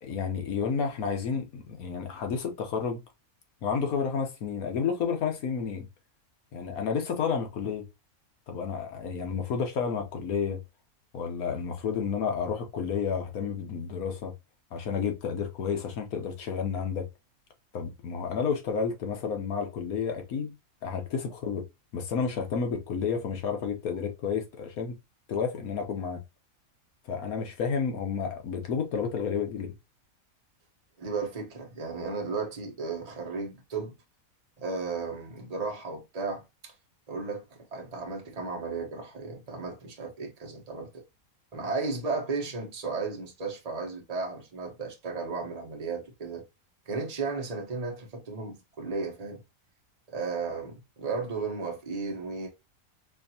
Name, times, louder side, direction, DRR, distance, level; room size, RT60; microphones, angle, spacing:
voice 1, 0.0-3.0 3.6-5.9 6.5-7.9 8.5-10.6 11.1-14.3 14.7-17.1 17.7-20.5 20.8-21.6 21.9-25.0 25.3-26.2 27.1-29.7, left 6 dB, 80° left, 1.4 m, -31 dB
voice 2, 31.0-33.9 34.6-36.7 37.1-40.9 41.5-46.4 46.9-49.4 50.1-52.5, right 4 dB, 30° right, 1.0 m, -34 dB
4.4 x 2.7 x 2.7 m
omnidirectional pair, 1.5 m